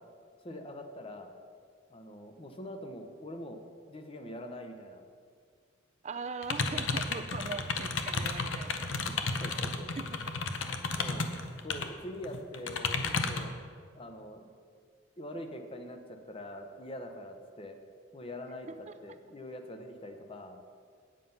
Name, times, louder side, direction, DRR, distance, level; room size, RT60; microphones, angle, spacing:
voice 1, 0.4-1.3 1.9-3.6 3.9-5.0 8.9-9.9 10.9-13.5 13.9-14.5 15.2-17.8 18.1-18.7 19.0-20.6, left 1 dB, 30° left, 6 dB, 0.8 m, -44 dB
voice 2, 6.0-8.7 9.9-10.0 18.9-19.0, right 4 dB, 35° right, 10 dB, 0.4 m, -40 dB
sound 1, 6.4-11.9 12.2-13.5, left 4 dB, 70° left, 0.7 m, -32 dB
9.0 x 7.6 x 5.5 m, 2.1 s
head